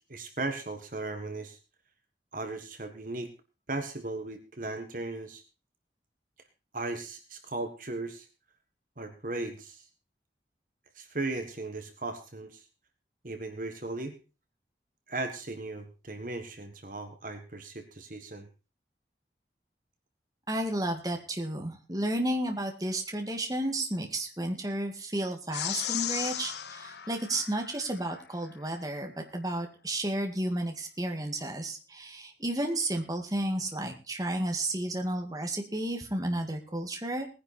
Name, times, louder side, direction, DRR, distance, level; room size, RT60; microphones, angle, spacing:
voice 1, 0.1-1.6 2.3-3.3 3.7-5.4 6.7-8.3 9.0-9.9 10.9-12.6 13.2-14.1 15.1-18.5, right 2 dB, 50° right, 7 dB, 1.6 m, -37 dB
voice 2, 20.5-37.3, right 1 dB, 20° right, 3 dB, 2.2 m, -32 dB
sound 1, 25.5-28.2, left 11 dB, 75° left, 0.8 m, -36 dB
19.0 x 10.5 x 4.3 m, 0.33 s
head